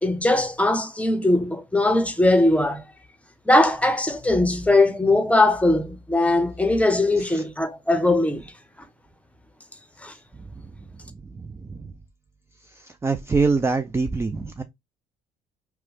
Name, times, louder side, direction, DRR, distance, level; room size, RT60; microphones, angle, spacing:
voice 1, 0.0-2.8 3.5-8.4 10.0-10.1, left 2 dB, 5° left, 0.7 m, -20 dB
voice 2, 13.0-14.6, right 4 dB, 15° right, 0.3 m, -23 dB
2.9 x 2.2 x 3.2 m
hypercardioid pair, 55°, 19 cm